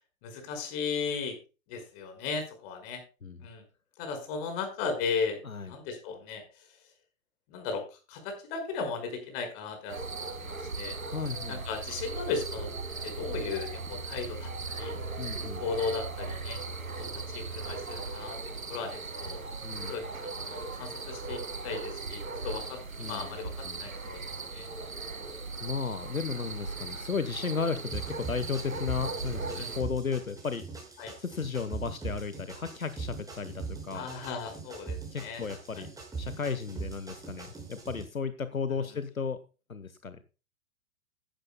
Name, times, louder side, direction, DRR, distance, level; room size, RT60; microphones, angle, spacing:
voice 1, 0.2-1.4 1.7-3.0 3.4-3.6 4.0-5.4 5.7-6.4 7.5-7.8 8.1-11.0 11.5-12.7 13.0-14.9 15.6-16.6 17.0-18.4 18.7-19.5 19.9-24.2 24.5-24.7 29.5-29.7 31.0-31.1 33.9-35.4 35.7-35.8 38.7-38.8, left 5 dB, 45° left, 6 dB, 5.1 m, -36 dB
sound 1, 9.9-29.8, right 3 dB, 90° right, 2.1 m, -38 dB
voice 2, 11.1-11.6 15.2-15.6 19.6-19.9 23.0-23.4 23.6-23.8 25.6-30.6 31.2-34.1 35.1-35.9 36.2-39.4 39.7-40.2, left 5 dB, 85° left, 12 dB, 1.1 m, -34 dB
sound 2, 27.9-38.0, right 5 dB, 10° right, 5.7 m, -41 dB
15.5 x 12.0 x 2.2 m, 0.32 s
figure-of-eight pair, 105°, 40 cm